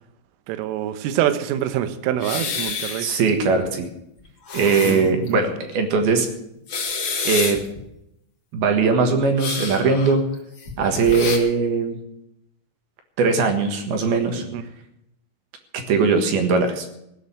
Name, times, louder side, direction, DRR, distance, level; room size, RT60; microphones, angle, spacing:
voice 1, 0.5-3.1 4.9-5.4 14.5-14.6, right 11 dB, 80° right, 10 dB, 3.5 m, -25 dB
sound 1, 2.2-3.3 3.6-3.7 4.2-5.3 5.7-5.8 6.5-7.8 9.4-11.4, left 5 dB, 65° left, 1.2 m, -28 dB
voice 2, 3.0-3.9 4.5-6.3 7.2-7.6 8.5-10.2 10.8-12.0 13.2-14.4 15.7-16.9, right 4 dB, 60° right, 6 dB, 2.9 m, -20 dB
17.0 x 6.8 x 9.5 m, 0.81 s
omnidirectional pair, 5.9 m